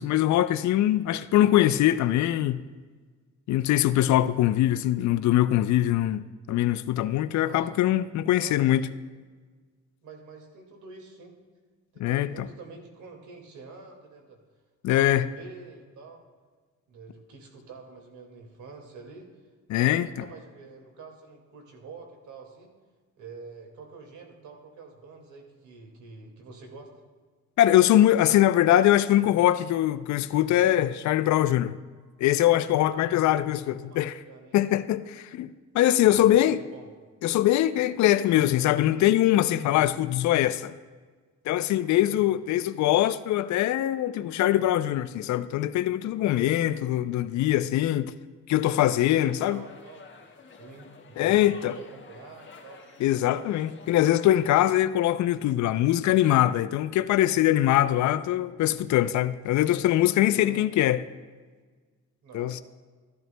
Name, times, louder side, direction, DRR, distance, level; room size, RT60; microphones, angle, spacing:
voice 1, 0.0-2.6 3.5-8.8 12.0-12.3 14.8-15.2 19.7-20.1 27.6-31.8 32.2-34.1 34.5-35.5 35.7-36.6 37.2-40.7 41.5-48.1 48.5-49.6 51.2-51.8 53.0-61.0 62.3-62.6, left 13 dB, 70° left, 0.5 m, -22 dB
voice 2, 7.5-7.8 8.4-8.7 10.0-11.4 11.9-14.4 14.9-16.2 16.9-19.3 19.8-22.7 23.2-26.9 33.3-34.0 34.3-34.6 36.1-36.9 42.0-42.2 49.2-50.2 50.6-52.8 60.3-60.7 62.2-62.6, right 4 dB, 75° right, 2.0 m, -46 dB
sound 1, 48.5-54.9, left 4 dB, 40° left, 1.5 m, -50 dB
13.5 x 12.0 x 2.2 m
cardioid pair, 90°, 30 cm